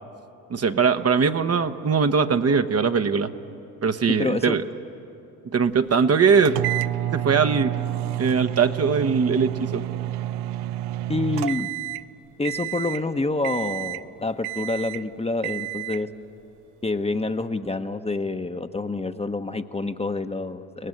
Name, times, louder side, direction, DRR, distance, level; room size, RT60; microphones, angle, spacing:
voice 1, 0.5-3.3 3.8-4.6 5.5-6.6 7.1-7.7 8.2-9.8, right 5 dB, 35° right, 8 dB, 1.1 m, -21 dB
voice 2, 4.1-4.5 11.1-11.7 12.4-16.1 16.8-20.9, left 2 dB, 15° left, 8 dB, 1.1 m, -27 dB
sound 1, 6.4-12.1 12.4-13.0 13.4-14.1 14.4-15.0 15.4-16.1, right 14 dB, 65° right, 0.7 m, -29 dB
29.5 x 18.5 x 7.9 m, 2.8 s
hypercardioid pair, 65°, 43 cm